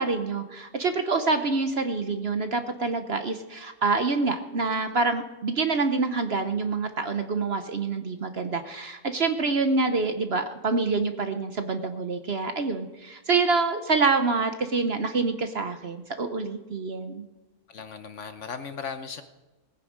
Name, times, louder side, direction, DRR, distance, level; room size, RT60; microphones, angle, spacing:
voice 1, 0.0-17.2, right 4 dB, 50° right, 8 dB, 1.0 m, -26 dB
voice 2, 17.7-19.2, left 6 dB, 55° left, 9 dB, 1.1 m, -37 dB
19.0 x 9.8 x 5.0 m, 1.1 s
omnidirectional pair, 1.6 m